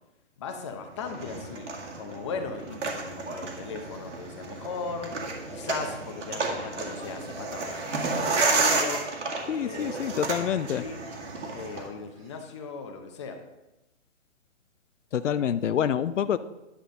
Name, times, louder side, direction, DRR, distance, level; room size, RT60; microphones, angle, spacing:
voice 1, 0.4-1.7 2.0-5.2 5.5-9.1 9.6-11.0 11.5-13.4, left 5 dB, 25° left, 5 dB, 0.8 m, -38 dB
sound 1, 1.0-11.9, right 3 dB, 80° right, 1.9 m, -31 dB
Livestock farm animals working animals, 7.6-8.7 9.0-10.0 10.3-11.6 12.1-12.5, right 2 dB, 10° right, 0.8 m, -53 dB
voice 2, 9.5-10.8 15.1-16.4, left 9 dB, 90° left, 13 dB, 0.6 m, -27 dB
10.0 x 7.2 x 3.8 m, 0.97 s
hypercardioid pair, 160°, 36 cm